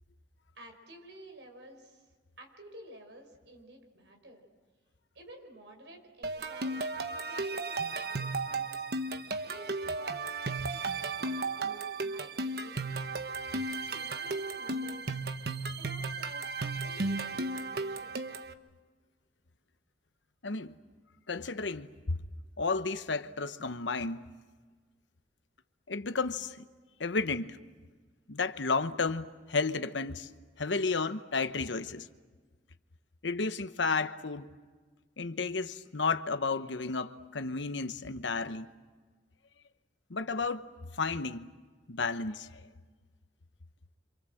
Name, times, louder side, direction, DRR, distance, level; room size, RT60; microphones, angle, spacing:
voice 1, 0.5-2.0 2.4-4.4 5.1-6.9 7.3-8.8 9.4-10.2 10.7-10.8 11.1-13.1 13.9-15.2 15.8-16.5 16.8-18.2, right 1 dB, 80° right, 5.1 m, -52 dB
sound 1, 6.2-18.5, right 3 dB, 60° right, 1.1 m, -35 dB
voice 2, 20.4-20.8 21.3-22.2 22.6-24.3 25.9-26.6 27.0-27.6 28.3-30.3 30.6-32.1 33.2-34.5 35.2-38.7 40.1-40.6 41.0-41.5 41.9-42.6, left 4 dB, 85° left, 1.0 m, -32 dB
27.5 x 27.0 x 7.8 m
head